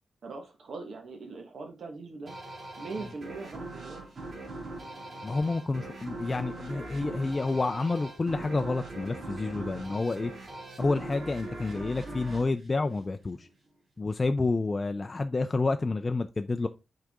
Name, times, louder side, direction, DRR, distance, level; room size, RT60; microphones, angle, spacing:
voice 1, 0.2-2.3 2.8-4.1, right 3 dB, 75° right, 1.4 m, -41 dB
sound 1, 2.3-13.5, right 2 dB, 50° right, 2.1 m, -41 dB
voice 2, 5.2-10.3 10.8-13.5 14.0-16.7, left 3 dB, 30° left, 0.4 m, -29 dB
6.5 x 4.8 x 3.5 m
wide cardioid pair, 130°, 0 cm